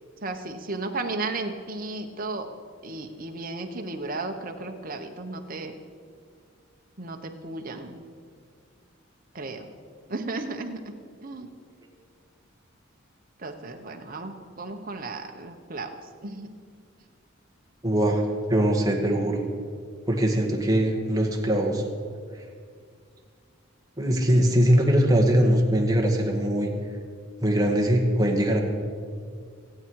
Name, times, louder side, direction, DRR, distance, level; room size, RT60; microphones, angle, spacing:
voice 1, 0.2-2.5 2.8-5.7 7.0-8.0 9.3-9.7 10.1-10.9 11.2-11.5 13.4-15.9 16.2-16.5, right 3 dB, 45° right, 4 dB, 1.1 m, -34 dB
voice 2, 17.8-18.2 18.5-19.4 20.1-21.8 24.0-26.7 27.4-28.6, equal, 20° right, 1 dB, 1.7 m, -21 dB
24.5 x 8.7 x 4.8 m, 2.1 s
head